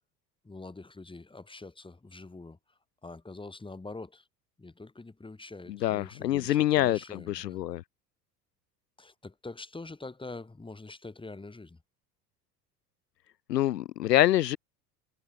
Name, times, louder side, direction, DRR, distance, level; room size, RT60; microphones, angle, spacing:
voice 1, 0.4-4.3 4.6-7.6 9.0-11.8, left 3 dB, 10° left, 4.2 m, -45 dB
voice 2, 5.8-7.0 7.3-7.8 13.5-14.6, left 13 dB, 75° left, 0.6 m, -25 dB
figure-of-eight pair, 70°, 49 cm